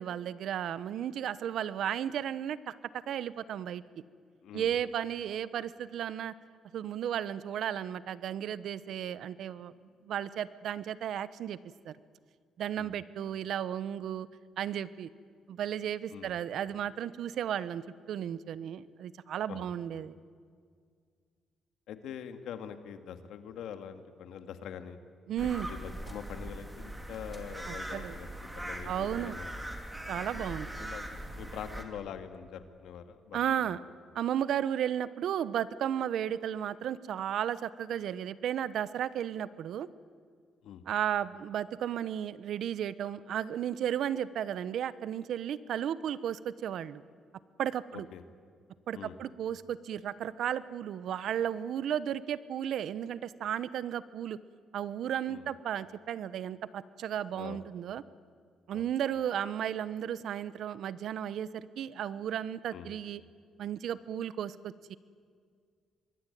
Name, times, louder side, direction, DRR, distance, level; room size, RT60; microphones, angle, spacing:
voice 1, 0.0-2.8 3.1-3.8 4.5-6.3 6.7-9.7 10.0-11.6 11.8-11.9 12.6-14.3 14.6-15.1 15.5-20.2 25.3-25.7 27.7-28.2 28.8-29.4 30.1-30.9 33.3-33.8 34.1-39.9 40.9-47.0 47.6-48.1 48.9-54.4 54.7-58.0 58.7-63.2 63.6-65.0, right 10 dB, 70° right, 16 dB, 1.0 m, -34 dB
voice 2, 4.4-4.7 12.8-12.9 16.1-16.3 19.5-19.7 21.9-25.0 25.4-28.3 28.5-29.5 30.3-30.5 30.8-31.1 31.3-33.8 40.6-40.8 47.9-48.2 48.9-49.2 55.3-55.5 57.3-57.6 58.7-58.8 62.7-62.9, left 8 dB, 80° left, 8 dB, 2.1 m, -44 dB
sound 1, 25.4-31.8, right 1 dB, 10° right, 3.3 m, -41 dB
25.5 x 21.5 x 9.4 m, 2.1 s
cardioid pair, 90°, 0 cm